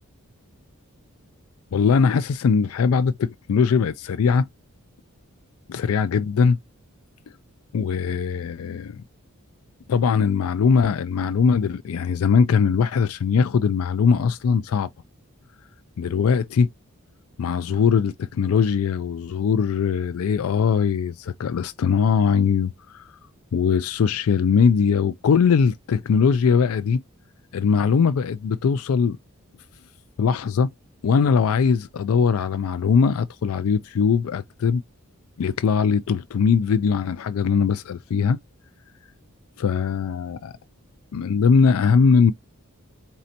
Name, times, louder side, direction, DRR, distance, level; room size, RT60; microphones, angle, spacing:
voice 1, 1.7-4.5 5.7-6.6 7.7-9.0 9.9-14.9 16.0-16.7 17.4-23.1 23.5-27.0 27.5-29.2 30.2-30.7 31.0-34.8 35.4-38.4 39.6-40.5 41.1-42.3, left 6 dB, 75° left, 0.4 m, -20 dB
4.2 x 2.7 x 2.6 m
head